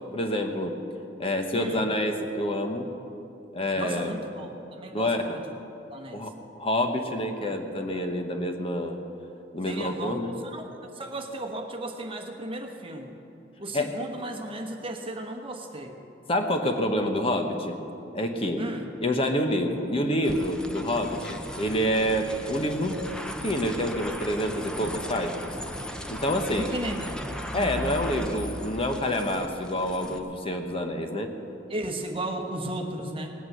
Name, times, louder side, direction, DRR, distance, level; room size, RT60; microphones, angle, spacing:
voice 1, 0.1-0.8 1.2-2.9 3.5-4.1 4.9-5.2 6.1-9.0 9.5-10.3 13.7-13.9 16.3-17.8 18.1-18.6 19.0-23.0 23.4-25.5 26.1-26.7 27.5-31.3, left 1 dB, 30° left, 4 dB, 1.0 m, -27 dB
voice 2, 1.5-1.8 3.7-5.4 5.9-6.3 9.6-13.1 13.6-16.0 18.6-18.9 26.6-27.2 27.5-27.9 31.7-33.3, right 1 dB, 30° right, 3 dB, 1.3 m, -35 dB
sound 1, 20.2-30.2, equal, 5° left, 0.8 m, -37 dB
18.5 x 8.8 x 7.8 m, 2.9 s
head